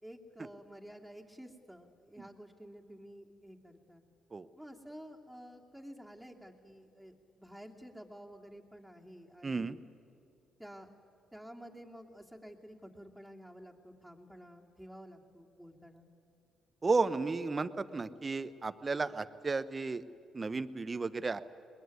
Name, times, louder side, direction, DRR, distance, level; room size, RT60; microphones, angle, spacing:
voice 1, 0.0-4.0 4.6-9.8 10.6-10.9 11.3-16.1, equal, ahead, 0 dB, 2.7 m, -51 dB
voice 2, 9.4-9.8 16.8-20.0 20.3-21.4, right 3 dB, 30° right, 14 dB, 0.9 m, -33 dB
22.0 x 20.5 x 9.7 m, 2.5 s
supercardioid pair, 70°, 0 cm